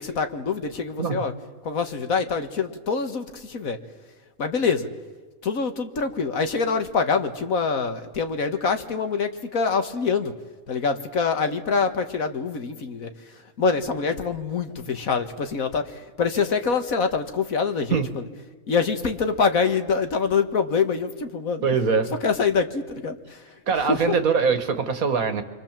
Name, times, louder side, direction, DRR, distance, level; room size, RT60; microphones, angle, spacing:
voice 1, 0.0-1.3 1.6-3.8 4.4-4.9 5.4-10.3 10.7-18.2 18.7-21.7 22.1-24.2, left 5 dB, 70° left, 7 dB, 2.0 m, -25 dB
voice 2, 21.6-22.2 23.7-25.4, right 5 dB, 75° right, 9 dB, 2.1 m, -22 dB
29.5 x 24.5 x 7.5 m, 1.3 s
omnidirectional pair, 1.5 m